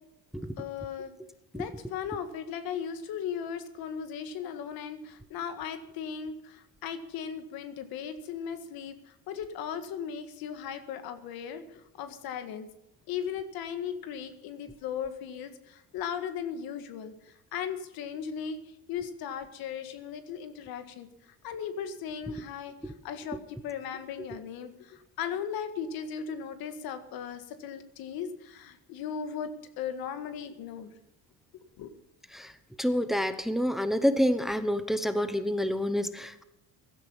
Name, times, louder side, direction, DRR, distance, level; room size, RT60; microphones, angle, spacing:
voice 1, 0.5-1.1 1.5-12.7 13.1-18.6 18.9-30.9 31.8-31.9, left 7 dB, 80° left, 10 dB, 1.8 m, -37 dB
voice 2, 32.8-36.4, equal, ahead, 11 dB, 1.1 m, -28 dB
16.5 x 12.5 x 5.7 m, 0.89 s
cardioid pair, 125°, 35 cm